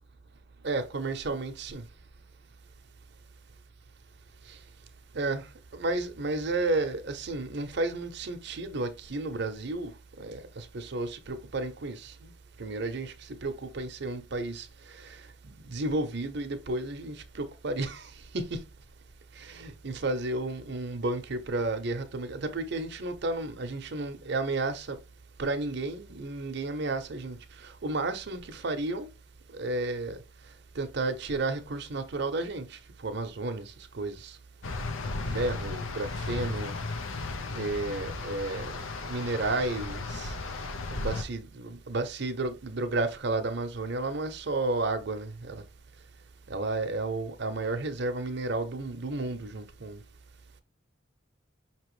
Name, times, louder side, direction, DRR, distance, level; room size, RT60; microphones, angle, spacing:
voice 1, 0.6-1.8 5.1-5.4 5.7-9.9 10.2-12.3 12.6-13.1 13.4-14.7 15.0-15.2 15.6-18.6 19.4-25.0 25.4-27.4 27.6-29.1 29.5-30.2 30.8-33.6 33.9-34.3 35.3-36.8 37.5-38.8 39.1-40.3 40.9-45.6 46.5-50.0, right 2 dB, 60° right, 0.7 m, -32 dB
sound 1, 34.6-41.2, left 3 dB, 90° left, 0.7 m, -35 dB
5.6 x 3.0 x 3.1 m
head